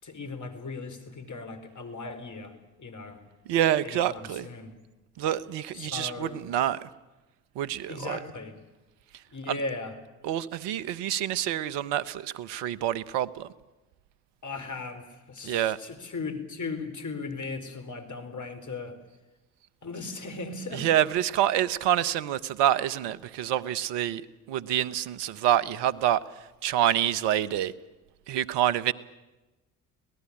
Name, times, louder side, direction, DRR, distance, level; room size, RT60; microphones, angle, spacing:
voice 1, 0.0-3.2 3.8-4.7 5.7-6.4 7.9-8.6 9.3-10.0 14.4-19.0 19.8-20.9, left 3 dB, 40° left, 7 dB, 4.7 m, -37 dB
voice 2, 3.5-4.5 5.2-6.8 7.6-8.2 9.5-9.6 10.2-13.5 15.4-15.8 20.7-24.2 24.5-26.2 26.6-27.7 28.3-28.9, right 11 dB, 70° right, 17 dB, 1.2 m, -27 dB
25.5 x 18.0 x 8.8 m, 1.1 s
hypercardioid pair, 55°, 44 cm